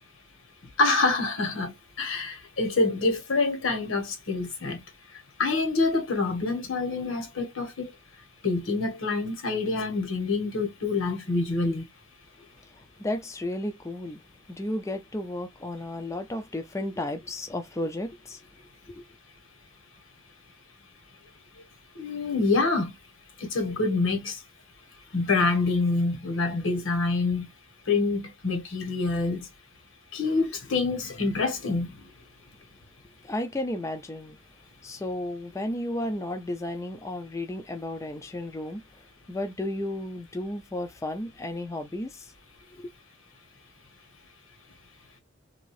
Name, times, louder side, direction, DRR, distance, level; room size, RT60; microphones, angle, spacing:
voice 1, 0.8-1.7 2.0-4.8 5.4-7.9 8.4-11.8 22.0-22.9 23.5-24.4 25.1-27.5 27.9-29.5 30.1-31.9, left 3 dB, 90° left, 1.3 m, -26 dB
voice 2, 12.6-14.2 14.5-18.4 18.9-19.0 33.2-34.4 34.8-38.8 39.3-42.3 42.7-42.9, left 1 dB, 15° left, 0.4 m, -33 dB
2.8 x 2.6 x 3.0 m
head